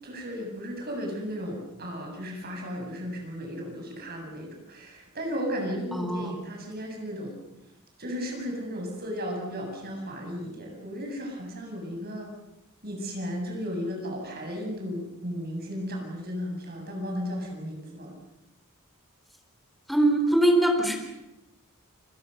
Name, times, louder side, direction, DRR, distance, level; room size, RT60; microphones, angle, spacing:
voice 1, 0.0-7.4 8.0-12.3 12.8-18.1, equal, 45° right, 2 dB, 7.6 m, -35 dB
voice 2, 5.9-6.4 19.9-21.0, right 1 dB, ahead, 4 dB, 4.1 m, -22 dB
29.5 x 21.5 x 6.7 m, 0.94 s
head